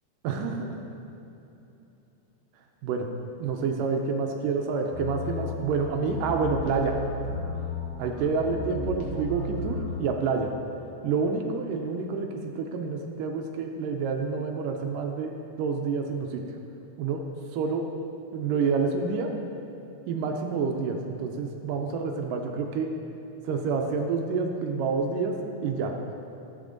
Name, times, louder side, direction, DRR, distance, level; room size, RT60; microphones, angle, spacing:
voice 1, 0.2-0.8 2.8-3.1 3.4-7.0 8.0-10.5 11.0-15.3 15.6-16.4 17.0-17.2 17.5-17.8 18.3-19.3 20.1-22.9 23.4-25.4 25.6-25.9, right 5 dB, 80° right, 3 dB, 2.3 m, -28 dB
sound 1, 4.9-10.0, left 2 dB, 60° left, 2.4 m, -34 dB
12.5 x 8.1 x 3.9 m, 3.0 s
omnidirectional pair, 3.9 m